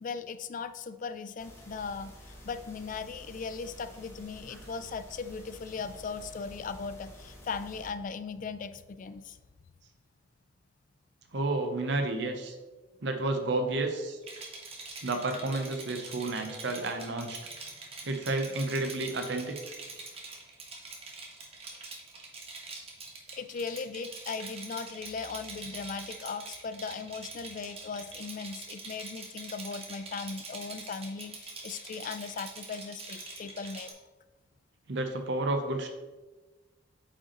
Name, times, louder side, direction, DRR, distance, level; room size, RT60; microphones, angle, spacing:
voice 1, 0.0-9.4 23.4-33.9, left 5 dB, 45° left, 11 dB, 0.3 m, -38 dB
sound 1, 1.4-7.9, equal, 15° left, 1.3 m, -50 dB
voice 2, 11.3-12.5 13.0-14.2 15.0-17.4 18.0-19.5 34.9-35.9, right 2 dB, 65° right, 6 dB, 0.7 m, -31 dB
Rattle, 14.2-33.9, right 3 dB, 30° right, 1.2 m, -44 dB
8.5 x 5.1 x 3.0 m, 1.2 s
head